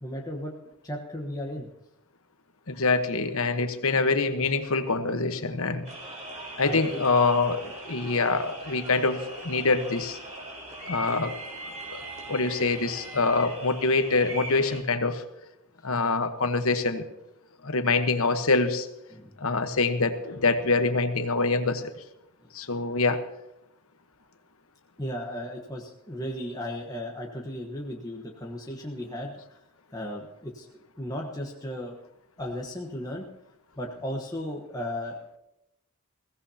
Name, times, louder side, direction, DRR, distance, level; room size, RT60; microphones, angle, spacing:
voice 1, 0.0-0.5 0.8-1.7 6.6-7.1 19.1-19.3 25.0-29.6 29.9-32.0 32.4-33.3 33.8-35.4, equal, 15° left, -1 dB, 1.2 m, -35 dB
voice 2, 2.7-5.8 6.6-10.2 10.9-11.3 11.9-12.0 12.3-15.2 15.8-17.1 17.6-18.9 19.4-21.8 22.5-23.2, left 3 dB, 70° left, 8 dB, 1.2 m, -25 dB
sound 1, 5.8-14.8, right 1 dB, 30° right, 4.2 m, -40 dB
21.5 x 16.5 x 2.9 m, 0.88 s
head